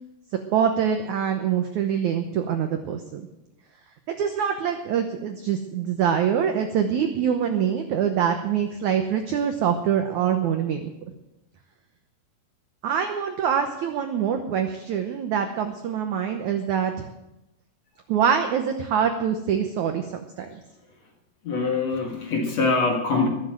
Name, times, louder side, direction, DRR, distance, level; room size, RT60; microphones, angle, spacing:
voice 1, 0.5-3.3 4.1-10.9 12.8-16.9 18.1-20.6, right 8 dB, 85° right, 6 dB, 1.7 m, -24 dB
voice 2, 21.4-23.3, left 3 dB, 50° left, 2 dB, 2.4 m, -23 dB
21.5 x 7.2 x 7.6 m, 0.93 s
omnidirectional pair, 4.8 m